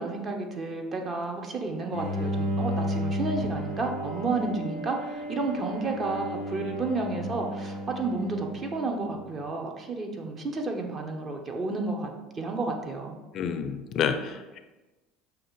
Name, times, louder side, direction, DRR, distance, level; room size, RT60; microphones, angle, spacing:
voice 1, 0.0-12.1 12.4-13.2, right 3 dB, 35° right, 3 dB, 0.7 m, -31 dB
Bowed string instrument, 1.9-9.2, equal, 90° right, 1.0 m, -33 dB
voice 2, 13.3-14.6, left 7 dB, 50° left, 8 dB, 0.4 m, -29 dB
6.3 x 2.4 x 3.1 m, 1.1 s
hypercardioid pair, 80°, 0 cm